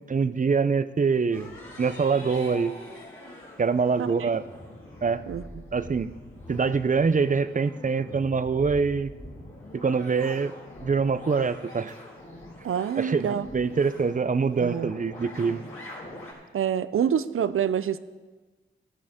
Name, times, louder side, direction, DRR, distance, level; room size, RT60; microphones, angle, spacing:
voice 1, 0.1-1.5 1.8-2.7 3.6-4.4 5.0-5.2 5.7-6.1 6.5-9.1 9.7-10.5 10.8-11.9 13.0-15.6, right 5 dB, 40° right, 13 dB, 0.6 m, -24 dB
sound 1, 1.3-16.3, left 1 dB, 90° left, 4.6 m, -44 dB
voice 2, 4.0-4.3 5.3-5.4 12.6-13.5 14.6-14.9 16.5-18.0, right 8 dB, 80° right, 15 dB, 0.5 m, -27 dB
14.0 x 13.5 x 3.6 m, 1.3 s
cardioid pair, 50°, 21 cm